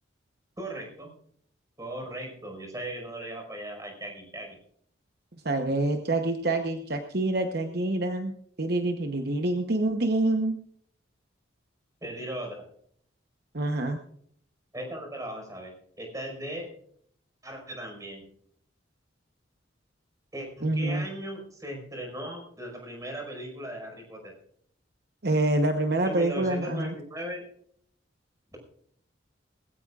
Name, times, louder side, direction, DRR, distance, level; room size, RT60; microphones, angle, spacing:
voice 1, 0.6-1.1 1.8-4.6 12.0-12.6 14.7-16.7 17.4-18.3 20.3-24.3 26.0-27.4 28.5-28.6, right 1 dB, 20° right, 2 dB, 5.1 m, -38 dB
voice 2, 5.4-10.6 13.5-14.0 20.6-21.1 25.2-26.9, right 2 dB, 55° right, 5 dB, 1.0 m, -26 dB
20.0 x 16.5 x 2.5 m, 0.64 s
head